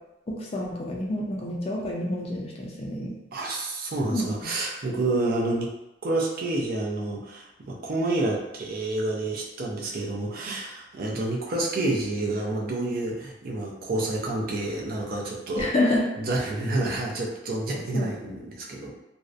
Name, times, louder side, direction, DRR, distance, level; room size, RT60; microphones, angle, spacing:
voice 1, 0.3-3.1 3.4-3.6 4.1-4.5 15.6-16.1 17.9-18.3, left 1 dB, 35° left, -2 dB, 0.4 m, -28 dB
voice 2, 3.3-5.7 6.0-15.7 16.2-18.9, right 2 dB, 50° right, -2 dB, 0.5 m, -29 dB
2.6 x 2.1 x 2.4 m, 0.93 s
head